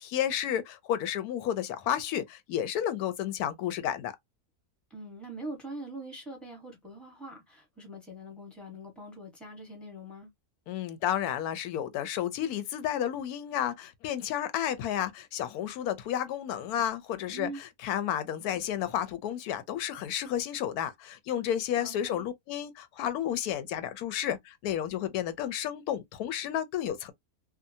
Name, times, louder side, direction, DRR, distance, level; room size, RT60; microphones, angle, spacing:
voice 1, 0.0-4.1 10.7-27.1, left 10 dB, 90° left, 1.1 m, -31 dB
voice 2, 4.9-10.3 17.3-17.6 21.8-22.3, right 1 dB, ahead, 0.9 m, -43 dB
2.7 x 2.2 x 2.6 m
omnidirectional pair, 1.6 m